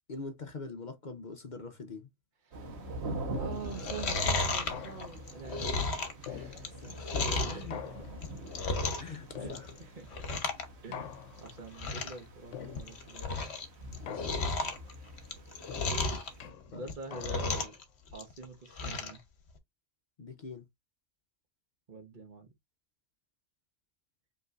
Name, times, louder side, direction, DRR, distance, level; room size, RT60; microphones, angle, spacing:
voice 1, 0.1-2.1 6.8-7.8 9.0-9.7 14.0-14.4 16.7-16.8 20.2-20.7, left 3 dB, 45° left, 0.8 m, -43 dB
voice 2, 2.4-8.1 9.3-9.5 9.8-10.3 10.8-13.3 16.7-17.8 18.1-19.2 21.9-22.5, right 4 dB, 40° right, 1.2 m, -46 dB
sound 1, 2.5-16.5, right 1 dB, 60° right, 1.3 m, -45 dB
sound 2, 3.3-3.9 4.7-5.4 6.3-7.0 7.7-8.5 9.3-10.1 10.9-11.6 12.5-13.2 14.1-14.8 15.7-17.7, left 8 dB, 80° left, 1.0 m, -45 dB
Chewing mastication, 3.6-7.6 8.1-9.2 9.4-9.8 10.1-10.6 10.9-11.0 11.5-11.6 11.8-12.2 12.6-13.6 13.9-16.3 16.8-17.8 18.1-19.2 19.6-19.7, left 3 dB, 60° left, 1.3 m, -33 dB
5.3 x 3.2 x 2.4 m
omnidirectional pair, 1.3 m